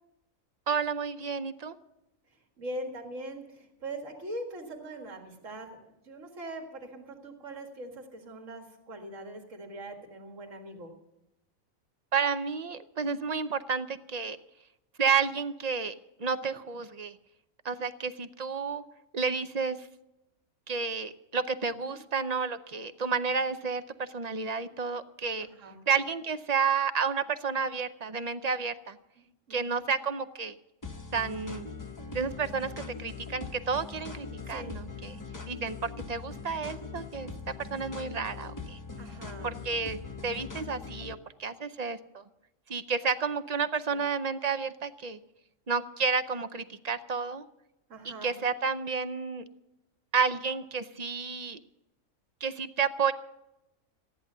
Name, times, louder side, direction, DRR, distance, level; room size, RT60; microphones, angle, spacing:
voice 1, 0.7-1.8 12.1-14.4 15.0-17.2 17.6-18.8 19.1-19.9 20.7-25.5 25.9-29.0 29.5-30.5 31.1-31.7 32.1-35.2 35.4-38.8 39.4-42.2 42.7-45.2 45.7-47.4 48.0-49.4 50.1-51.6 52.4-53.1, right 5 dB, 45° right, 11 dB, 0.5 m, -31 dB
voice 2, 2.6-5.8 6.0-10.9 16.4-16.6 21.9-22.0 25.4-25.8 29.2-29.8 34.4-34.7 39.0-39.5 43.9-44.0 47.9-48.3, right 1 dB, 65° right, 3 dB, 2.2 m, -42 dB
sound 1, 30.8-41.1, left 4 dB, 15° left, 0.7 m, -41 dB
15.0 x 11.0 x 6.7 m, 0.90 s
omnidirectional pair, 1.4 m